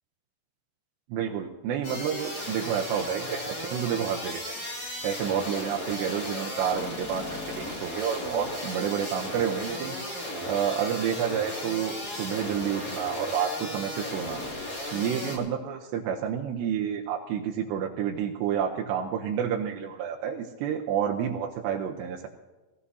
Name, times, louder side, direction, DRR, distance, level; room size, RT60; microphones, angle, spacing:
voice 1, 1.1-4.5 5.0-10.0 10.4-22.3, right 8 dB, 85° right, 1 dB, 2.5 m, -30 dB
sound 1, 1.8-15.4, left 1 dB, 35° left, 1.6 m, -35 dB
20.0 x 15.5 x 2.8 m, 1.2 s
omnidirectional pair, 5.8 m